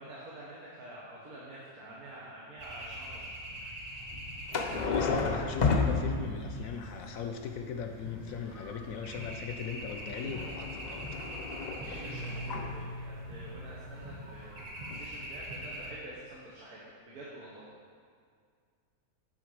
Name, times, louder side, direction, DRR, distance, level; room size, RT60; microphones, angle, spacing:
voice 1, 0.0-3.3 11.8-17.7, right 1 dB, 80° right, -6 dB, 1.7 m, -48 dB
sound 1, 2.6-15.9, equal, 40° right, 1.9 m, -44 dB
sound 2, 4.5-6.6 9.5-12.8 14.6-14.7 14.9-15.0, left 4 dB, 55° left, 0.4 m, -32 dB
voice 2, 4.8-11.1, left 6 dB, 70° left, 5 dB, 0.9 m, -39 dB
sound 3, 11.8-14.4, equal, 65° right, 2.8 m, -43 dB
11.5 x 4.0 x 4.7 m, 2.1 s
omnidirectional pair, 1.6 m